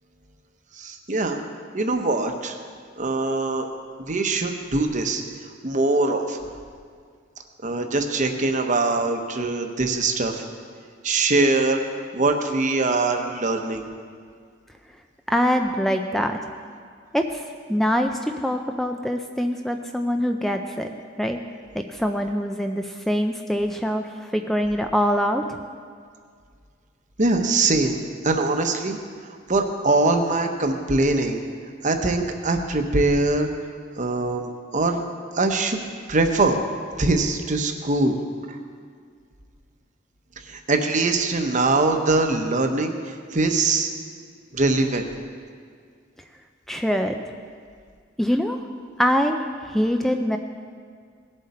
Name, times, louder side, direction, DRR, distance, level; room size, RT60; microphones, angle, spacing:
voice 1, 0.8-1.4 1.7-2.5 3.0-3.7 4.0-5.2 5.6-6.4 7.6-10.4 11.0-13.8 27.2-29.0 29.5-31.4 31.8-33.5 34.0-35.0 35.3-35.8 36.1-36.6 37.0-38.2 40.5-43.9 44.5-45.1, right 2 dB, 40° right, 5 dB, 0.9 m, -22 dB
voice 2, 15.3-16.4 17.1-17.4 17.7-21.4 21.7-25.6 46.7-47.2 48.2-48.6 49.0-50.4, equal, ahead, 5 dB, 0.4 m, -24 dB
18.0 x 7.7 x 4.2 m, 2.1 s
head